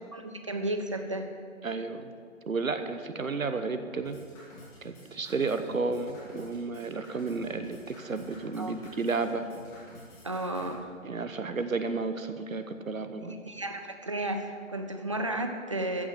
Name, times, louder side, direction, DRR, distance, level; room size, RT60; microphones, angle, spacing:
voice 1, 0.1-1.3 8.6-8.7 10.2-10.9 13.3-16.1, right 1 dB, 25° right, 6 dB, 0.5 m, -33 dB
voice 2, 1.6-2.1 2.5-4.2 4.8-9.5 11.0-13.4, right 4 dB, 85° right, 9 dB, 1.1 m, -32 dB
sound 1, 3.9-10.7, left 1 dB, 10° left, 2.3 m, -50 dB
14.0 x 6.4 x 7.4 m, 2.1 s
figure-of-eight pair, 155°, 40 cm